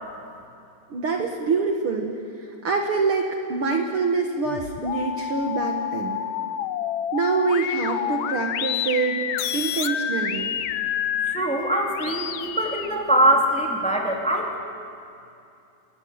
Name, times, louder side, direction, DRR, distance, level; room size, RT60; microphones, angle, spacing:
voice 1, 0.9-2.1 2.4-6.2 7.1-9.2 9.5-10.5, right 4 dB, 55° right, 2 dB, 2.0 m, -25 dB
sound 1, 4.5-12.9, left 9 dB, 75° left, 2.0 m, -29 dB
voice 2, 11.2-14.6, right 1 dB, ahead, -1 dB, 2.4 m, -23 dB
29.0 x 14.0 x 9.6 m, 2.7 s
omnidirectional pair, 3.4 m